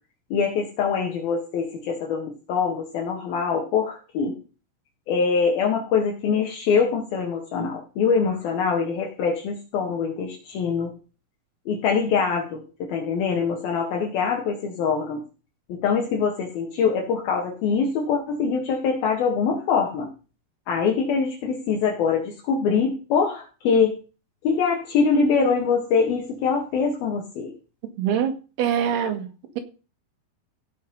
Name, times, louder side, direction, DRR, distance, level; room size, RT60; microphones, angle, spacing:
voice 1, 0.3-4.3 5.1-10.9 11.7-15.2 15.7-20.1 20.7-23.9 24.4-27.5, left 5 dB, 70° left, 3.7 m, -24 dB
voice 2, 28.0-29.6, right 8 dB, 85° right, 3.7 m, -25 dB
16.5 x 5.8 x 5.5 m
omnidirectional pair, 4.4 m